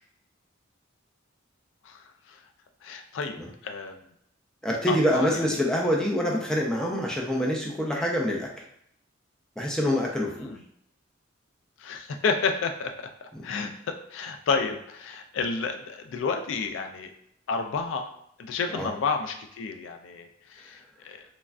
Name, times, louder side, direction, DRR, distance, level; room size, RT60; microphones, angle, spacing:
voice 1, 1.8-2.4 2.8-3.4 3.6-4.0 4.9-5.4 10.4-10.6 11.8-17.1 17.5-18.1 18.4-21.2, left 4 dB, 70° left, 6 dB, 0.3 m, -31 dB
voice 2, 4.6-8.5 9.6-10.5 13.4-13.5 18.7-18.9, equal, 5° left, -2 dB, 0.4 m, -26 dB
3.1 x 2.2 x 2.4 m, 0.73 s
head